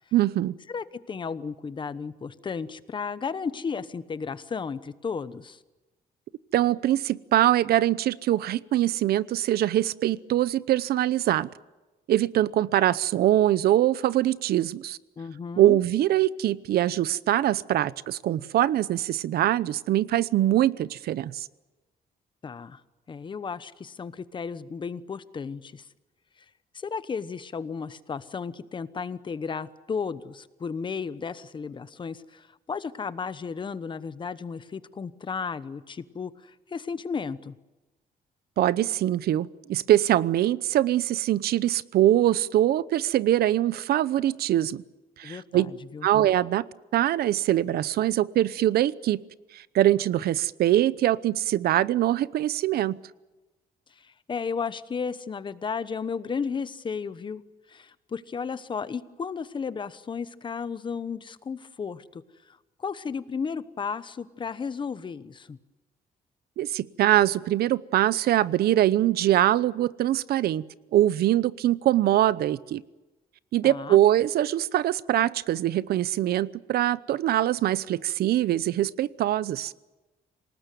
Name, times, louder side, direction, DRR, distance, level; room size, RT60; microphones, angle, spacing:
voice 1, 0.1-0.5 6.5-11.5 12.1-15.0 15.6-21.5 38.6-44.8 45.2-45.7 46.0-46.6 46.9-49.2 49.5-53.0 66.6-70.6 70.9-72.8 73.5-79.7, right 13 dB, 80° right, 18 dB, 0.8 m, -23 dB
voice 2, 0.7-5.6 15.2-15.8 22.4-22.8 23.1-25.9 26.7-37.6 45.2-46.1 54.0-57.4 57.7-65.6 73.6-74.0, left 5 dB, 30° left, 14 dB, 1.0 m, -34 dB
27.0 x 19.0 x 9.3 m, 1.1 s
cardioid pair, 145°, 16 cm